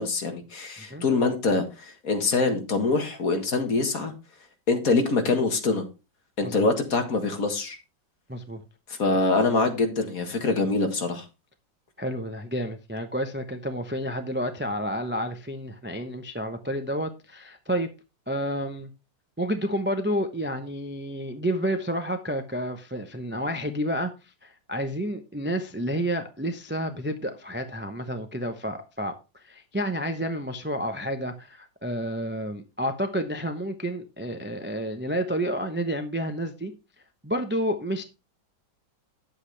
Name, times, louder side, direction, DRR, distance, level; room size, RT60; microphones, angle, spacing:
voice 1, 0.0-4.1 4.7-5.8 6.4-7.8 8.9-11.2, left 3 dB, 50° left, 2.1 m, -24 dB
voice 2, 8.3-8.6 12.0-17.9 18.3-18.9 19.4-24.1 24.4-29.1 29.4-36.7 37.2-38.0, equal, 15° right, 0.4 m, -30 dB
10.0 x 8.1 x 3.3 m
omnidirectional pair, 1.9 m